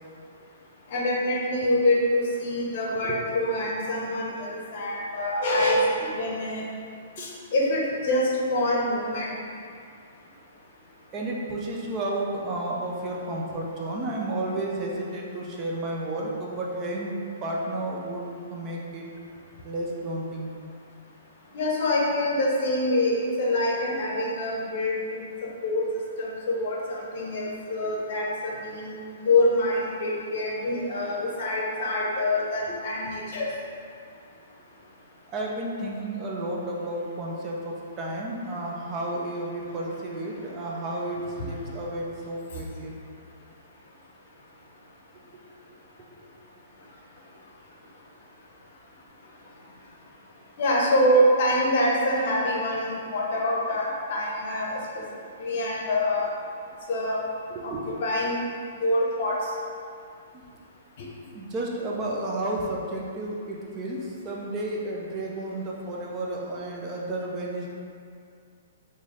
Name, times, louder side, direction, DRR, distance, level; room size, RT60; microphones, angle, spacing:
voice 1, 0.9-6.6 7.2-9.3 21.5-25.9 26.2-33.5 41.1-41.5 50.6-55.1 55.4-56.3 56.9-57.2 57.6-57.7 58.0-58.4 58.8-59.4 61.0-61.1, left 1 dB, 55° left, -3 dB, 0.7 m, -25 dB
voice 2, 11.1-17.2 17.4-19.0 19.6-20.5 35.3-42.9 45.3-45.5 46.2-46.3 57.5-57.8 61.3-67.7, right 1 dB, 25° right, -3 dB, 0.4 m, -32 dB
3.1 x 2.6 x 3.8 m, 2.3 s
hypercardioid pair, 150°, 0 cm